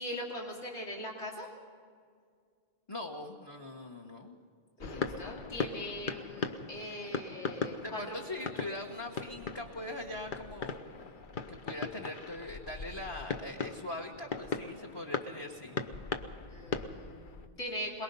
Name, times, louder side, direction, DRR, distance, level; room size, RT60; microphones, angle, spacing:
voice 1, 0.0-1.5 4.8-8.1 16.5-18.0, left 1 dB, 75° left, -3 dB, 3.0 m, -41 dB
voice 2, 2.9-4.4 7.7-10.8 11.5-15.8, left 1 dB, 25° left, 2 dB, 1.2 m, -41 dB
sound 1, 4.8-17.5, left 4 dB, 50° left, 0.9 m, -39 dB
22.5 x 21.5 x 5.5 m, 2.1 s
omnidirectional pair, 1.2 m